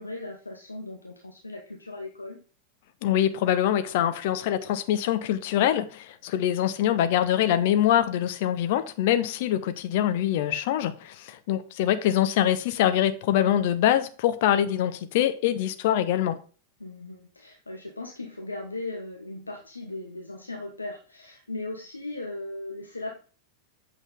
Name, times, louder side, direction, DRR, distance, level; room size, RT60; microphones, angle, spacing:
voice 1, 0.0-2.4 16.8-23.1, left 2 dB, 80° left, 1.0 m, -38 dB
voice 2, 3.0-16.4, left 11 dB, 50° left, 0.9 m, -24 dB
8.1 x 6.1 x 3.7 m
figure-of-eight pair, 90°, 0 cm